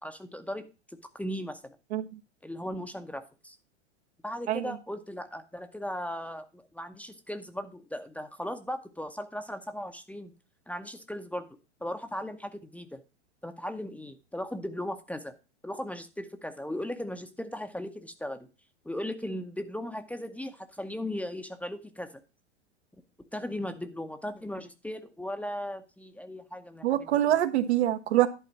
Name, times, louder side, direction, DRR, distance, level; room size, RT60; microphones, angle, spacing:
voice 1, 0.0-1.8 2.4-3.6 4.2-10.3 10.7-11.5 11.8-13.0 13.4-15.3 15.6-18.5 18.8-22.1 23.3-27.1, left 1 dB, 5° left, 8 dB, 0.8 m, -37 dB
voice 2, 26.8-28.3, right 13 dB, 65° right, 7 dB, 1.3 m, -25 dB
11.0 x 4.1 x 7.2 m, 0.30 s
hypercardioid pair, 105°, 35 cm